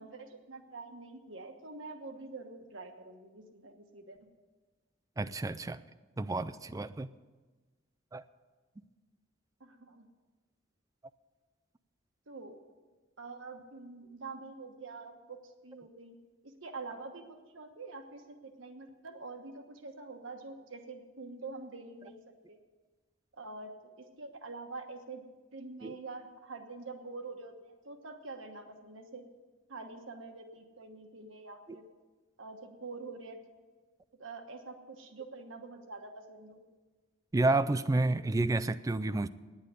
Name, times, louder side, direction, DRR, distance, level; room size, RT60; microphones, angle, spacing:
voice 1, 0.0-4.2 9.6-10.1 12.3-12.5 13.2-15.4 15.6-16.1 16.4-22.2 22.5-22.6 23.4-23.7 24.0-25.2 25.5-29.2 29.7-31.8 32.4-33.4 34.2-36.6, right 3 dB, 85° right, 5 dB, 1.3 m, -46 dB
voice 2, 5.2-5.8 6.2-7.1 8.1-8.2 25.8-25.9 37.3-39.3, right 2 dB, 15° right, 13 dB, 0.3 m, -30 dB
9.7 x 8.7 x 9.2 m, 1.3 s
head